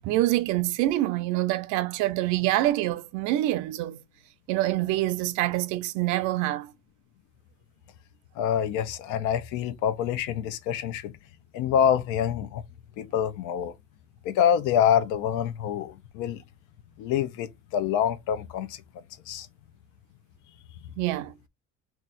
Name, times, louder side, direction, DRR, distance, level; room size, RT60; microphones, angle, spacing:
voice 1, 0.0-4.0 4.5-6.7 21.0-21.3, right 15 dB, 85° right, 0.5 m, -26 dB
voice 2, 8.4-11.1 11.5-12.6 13.0-13.7 14.2-16.4 17.0-18.8 19.3-19.5, left 9 dB, 85° left, 0.7 m, -26 dB
3.0 x 2.4 x 3.9 m
cardioid pair, 135°, 29 cm